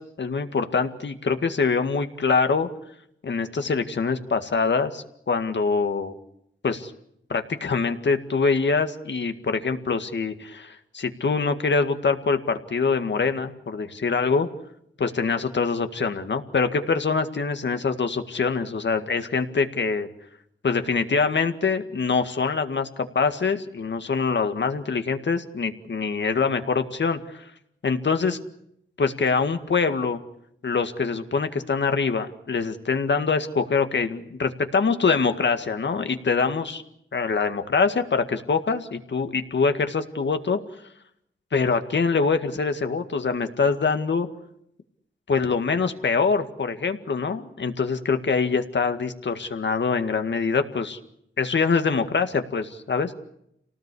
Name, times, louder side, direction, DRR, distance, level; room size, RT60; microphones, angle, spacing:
voice 1, 0.0-2.7 3.2-6.2 6.6-6.9 7.3-14.5 15.0-20.1 20.6-27.4 27.8-28.4 29.0-30.2 30.6-36.8 37.1-40.6 41.5-44.3 45.3-51.0 51.4-53.1, left 4 dB, 60° left, 8 dB, 1.9 m, -24 dB
29.0 x 18.5 x 8.4 m, 0.76 s
wide cardioid pair, 135°, 21 cm